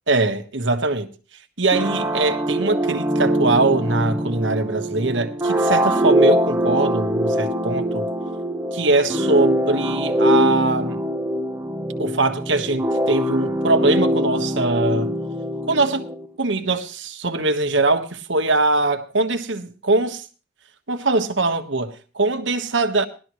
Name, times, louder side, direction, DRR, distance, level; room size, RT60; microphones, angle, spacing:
voice 1, 0.1-1.1 1.6-8.0 8.7-11.0 12.0-15.1 15.7-16.1 16.4-20.2 20.9-23.1, right 3 dB, 90° right, 1.4 m, -22 dB
sound 1, 1.7-16.3, equal, 15° right, 0.9 m, -22 dB
18.5 x 12.5 x 3.1 m
head